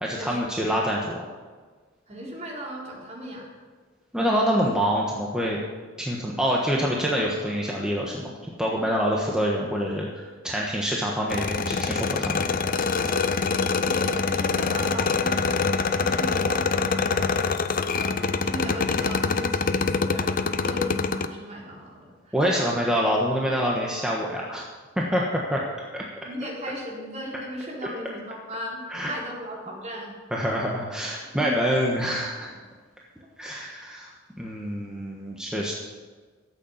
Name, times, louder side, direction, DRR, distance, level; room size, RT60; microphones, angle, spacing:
voice 1, 0.0-1.2 4.1-5.6 6.0-12.5 22.3-24.6 25.0-25.6 25.9-26.1 27.8-27.9 28.9-29.1 30.3-32.5 33.4-34.1 34.4-35.7, equal, 5° right, -3 dB, 1.3 m, -26 dB
voice 2, 2.1-3.5 13.8-15.5 15.9-17.4 18.0-22.8 26.2-30.1 31.3-31.5 31.9-32.0, equal, 35° right, -3 dB, 3.9 m, -37 dB
sound 1, 11.3-21.3, left 4 dB, 45° left, 0.7 m, -25 dB
13.0 x 8.5 x 7.2 m, 1.4 s
head